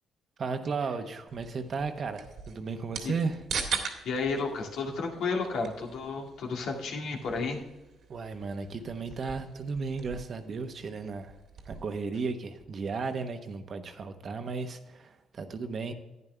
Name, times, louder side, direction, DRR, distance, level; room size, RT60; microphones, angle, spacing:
voice 1, 0.4-3.4 8.1-11.3 11.7-15.9, right 4 dB, 50° right, 7 dB, 1.1 m, -34 dB
sound 1, 1.3-12.0, right 6 dB, 70° right, 1.9 m, -41 dB
voice 2, 4.0-7.6, left 4 dB, 80° left, 0 dB, 2.1 m, -32 dB
11.0 x 9.7 x 3.4 m, 1.1 s
cardioid pair, 90°, 0 cm